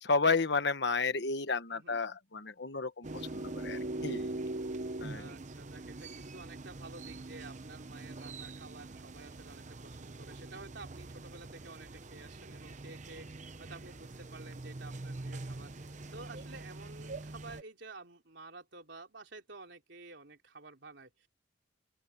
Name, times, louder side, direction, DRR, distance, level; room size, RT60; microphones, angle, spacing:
voice 1, 0.0-3.1 3.3-4.3 5.0-5.3, left 4 dB, 65° left, 1.3 m, -32 dB
sound 1, 3.0-17.6, right 2 dB, 40° right, 0.9 m, -43 dB
voice 2, 5.1-21.3, right 3 dB, 70° right, 3.6 m, -51 dB
open air
head